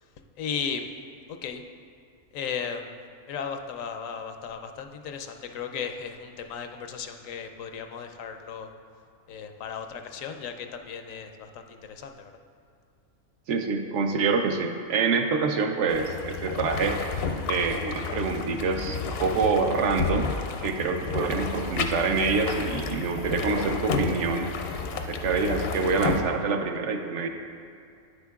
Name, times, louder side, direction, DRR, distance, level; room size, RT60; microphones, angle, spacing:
voice 1, 0.4-0.9 1.3-1.6 2.3-2.9 3.3-8.7 9.3-12.3, left 6 dB, 85° left, 6 dB, 1.0 m, -35 dB
voice 2, 13.5-17.0 17.5-20.3 20.6-24.5 25.1-27.3, right 4 dB, 70° right, 5 dB, 0.9 m, -26 dB
sound 1, 15.9-26.2, left 5 dB, 65° left, 0.6 m, -31 dB
9.1 x 8.0 x 2.3 m, 2.4 s
omnidirectional pair, 1.3 m